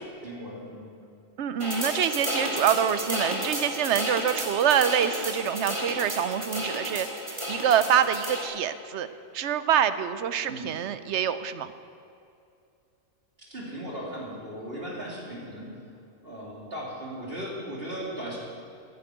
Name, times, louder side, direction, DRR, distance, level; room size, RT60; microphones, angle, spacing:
voice 1, 0.2-0.9 10.5-10.7 13.4-15.7 16.2-18.4, right 1 dB, 45° right, -4 dB, 3.3 m, -37 dB
voice 2, 1.4-9.1 9.3-11.7, right 9 dB, 65° right, 12 dB, 0.9 m, -26 dB
sound 1, 1.6-8.5, equal, 25° right, 2.1 m, -32 dB
11.5 x 9.8 x 9.1 m, 2.5 s
omnidirectional pair, 1.4 m